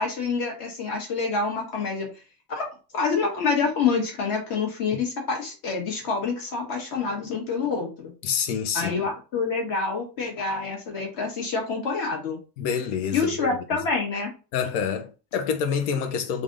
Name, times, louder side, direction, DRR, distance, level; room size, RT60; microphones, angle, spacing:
voice 1, 0.0-2.1 2.5-2.7 2.9-8.1 8.7-12.4 13.1-14.3, left 4 dB, 50° left, 1.7 m, -27 dB
voice 2, 8.2-8.9 12.6-13.8 14.5-16.4, left 7 dB, 70° left, 0.9 m, -27 dB
3.4 x 2.6 x 3.8 m
cardioid pair, 170°, 44 cm